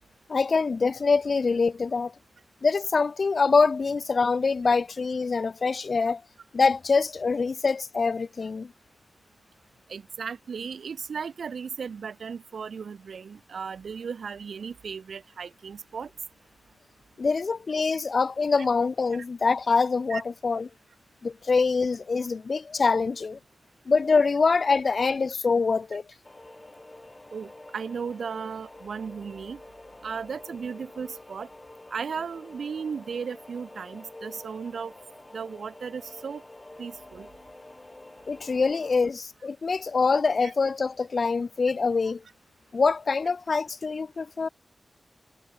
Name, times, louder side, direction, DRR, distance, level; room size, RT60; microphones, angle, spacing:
voice 1, 0.3-2.1 2.6-6.2 6.5-8.7 17.2-20.7 21.2-23.4 23.9-26.0 38.3-42.2 42.7-44.5, left 4 dB, 50° left, 1.0 m, -24 dB
voice 2, 9.9-16.1 20.1-20.2 27.3-29.6 30.0-31.5 31.9-34.9 35.3-36.4 36.8-37.3 40.4-40.5, right 6 dB, 85° right, 0.6 m, -36 dB
sound 1, 26.2-39.1, left 2 dB, 20° left, 4.3 m, -48 dB
wide cardioid pair, 145°, 0 cm